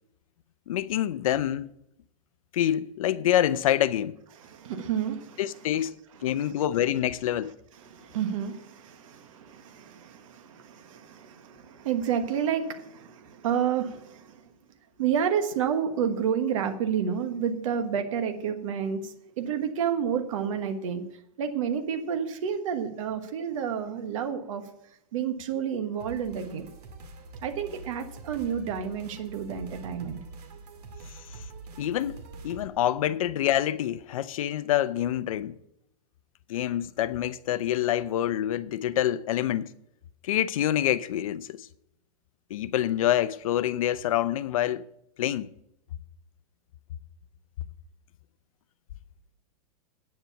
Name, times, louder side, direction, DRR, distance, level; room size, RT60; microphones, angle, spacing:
voice 1, 0.7-1.7 2.5-4.2 5.4-6.0 6.2-7.5 31.8-35.5 36.5-39.7 40.2-41.7 42.5-44.9 45.2-45.5, left 12 dB, 60° left, 0.6 m, -26 dB
voice 2, 4.4-5.4 6.2-6.3 7.8-14.4 15.0-21.0 21.4-24.6 25.1-26.7 27.4-30.2, right 8 dB, 55° right, 1.3 m, -30 dB
sound 1, 26.0-32.7, right 3 dB, 75° right, 2.1 m, -44 dB
9.3 x 7.4 x 7.0 m
supercardioid pair, 165°, 20 cm